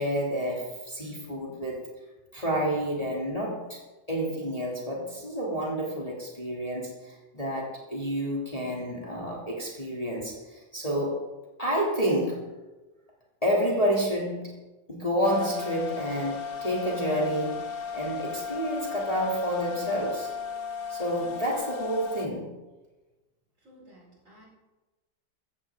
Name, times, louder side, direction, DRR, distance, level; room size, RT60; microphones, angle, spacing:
voice 1, 0.0-1.8 2.3-3.8 4.1-11.2 11.6-12.4 13.4-14.5 14.9-17.6 17.9-20.3 20.9-22.6, equal, 20° left, -4 dB, 2.8 m, -29 dB
sound 1, 15.2-22.3, left 6 dB, 40° left, 1.0 m, -36 dB
voice 2, 23.6-24.5, equal, 45° right, -4 dB, 5.2 m, -54 dB
16.0 x 14.5 x 3.8 m, 1.1 s
omnidirectional pair, 1.9 m